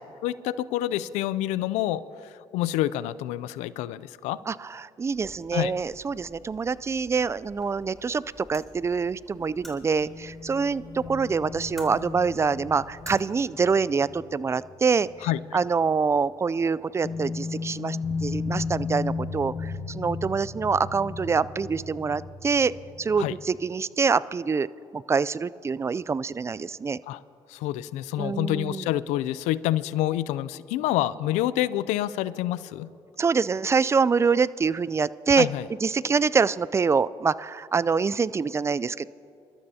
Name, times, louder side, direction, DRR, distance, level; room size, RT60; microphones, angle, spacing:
voice 1, 0.2-2.0 2.5-4.4 5.5-5.7 15.2-15.4 23.2-23.3 27.1-27.2 27.5-32.9 35.4-35.6, left 14 dB, 85° left, 17 dB, 0.4 m, -27 dB
voice 2, 4.5-22.7 23.0-24.7 24.9-27.0 28.2-28.9 33.2-35.5 35.8-39.1, right 5 dB, 25° right, 19 dB, 0.3 m, -25 dB
sound 1, 5.1-13.1, equal, ahead, 3.2 m, -50 dB
sound 2, 10.0-15.4 15.7-15.8 17.0-23.6, left 4 dB, 35° left, 1.1 m, -35 dB
27.5 x 13.0 x 2.8 m, 2.7 s
supercardioid pair, 70°, 12 cm